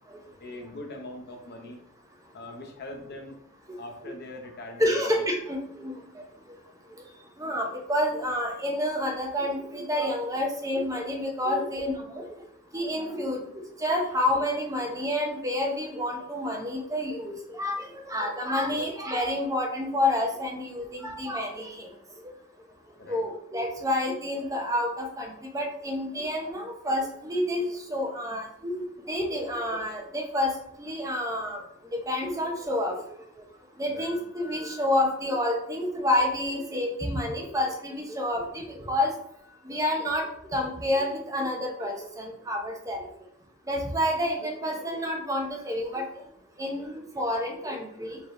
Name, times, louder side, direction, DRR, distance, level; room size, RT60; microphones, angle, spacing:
voice 1, 0.4-1.8 2.3-3.4 3.8-5.2 18.6-18.8 23.0-23.2 33.9-34.1, left 1 dB, 50° left, 3 dB, 0.8 m, -42 dB
voice 2, 4.8-5.9 7.4-12.3 12.7-13.4 13.8-17.7 18.0-21.9 23.1-25.3 25.5-27.6 27.9-30.5 30.8-31.6 32.1-32.9 33.8-39.1 39.7-40.2 40.5-43.0 43.7-46.0 46.6-48.2, left 1 dB, 15° right, 2 dB, 0.7 m, -29 dB
4.9 x 2.9 x 3.1 m, 0.73 s
head